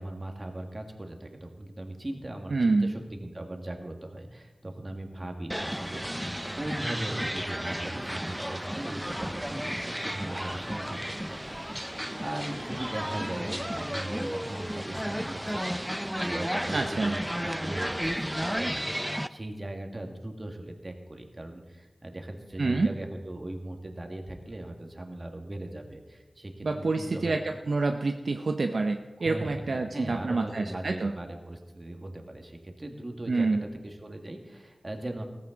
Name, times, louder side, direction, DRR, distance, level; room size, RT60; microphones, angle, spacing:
voice 1, 0.0-6.3 6.5-27.4 29.2-35.2, right 1 dB, 30° right, 3 dB, 1.9 m, -39 dB
voice 2, 2.5-2.9 16.7-17.1 22.6-22.9 26.6-31.1 33.3-33.7, right 3 dB, 65° right, 5 dB, 0.7 m, -27 dB
sound 1, 5.5-19.3, equal, 5° right, 0.5 m, -33 dB
16.0 x 15.0 x 3.9 m, 1.2 s
wide cardioid pair, 75°, 0 cm